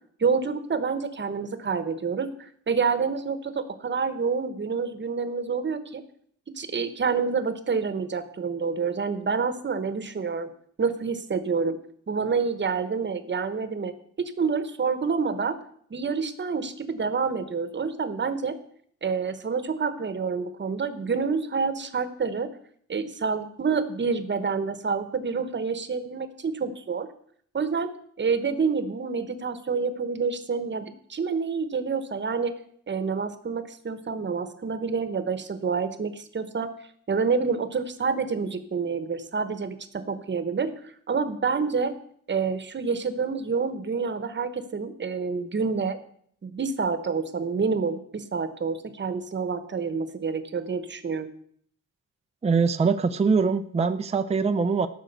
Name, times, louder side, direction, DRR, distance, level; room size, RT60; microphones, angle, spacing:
voice 1, 0.2-6.0 6.5-10.5 10.8-11.8 12.1-15.6 15.9-18.6 19.0-22.5 22.9-27.1 27.5-27.9 28.2-32.5 32.9-36.7 37.1-41.9 42.3-46.0 46.4-51.3, right 5 dB, 35° right, 11 dB, 1.1 m, -28 dB
voice 2, 52.4-54.9, right 5 dB, 20° right, 9 dB, 0.5 m, -23 dB
14.5 x 6.2 x 8.0 m, 0.63 s
wide cardioid pair, 180°, 32 cm